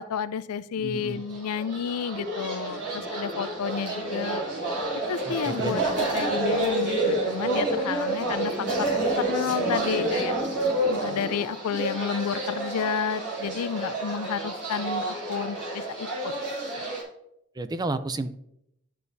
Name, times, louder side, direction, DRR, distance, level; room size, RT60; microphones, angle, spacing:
voice 1, 0.0-4.4 5.1-10.3 10.9-16.3 16.8-17.0, left 7 dB, 80° left, 15 dB, 0.4 m, -31 dB
voice 2, 0.8-1.2 5.3-5.7 17.6-18.4, right 2 dB, 20° right, 11 dB, 0.4 m, -31 dB
sound 1, 1.2-17.0, right 1 dB, 50° right, 3.1 m, -29 dB
11.0 x 5.5 x 2.7 m, 0.78 s
head